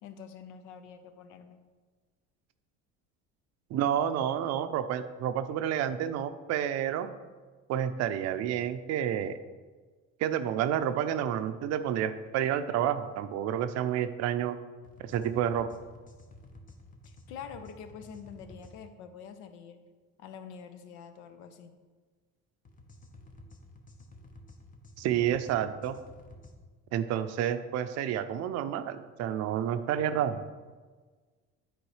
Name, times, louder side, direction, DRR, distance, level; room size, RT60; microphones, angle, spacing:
voice 1, 0.0-1.6 17.0-19.8 20.2-21.7, left 7 dB, 80° left, 9 dB, 0.7 m, -46 dB
voice 2, 3.7-7.1 7.7-9.4 10.2-14.6 15.0-15.7 25.0-26.0 26.9-30.4, right 10 dB, 60° right, 11 dB, 0.5 m, -29 dB
Fast Bass Pulse, 14.8-18.8 22.6-26.5, left 1 dB, 25° left, 0.9 m, -52 dB
9.2 x 4.5 x 3.2 m, 1.4 s
cardioid pair, 110°, 30 cm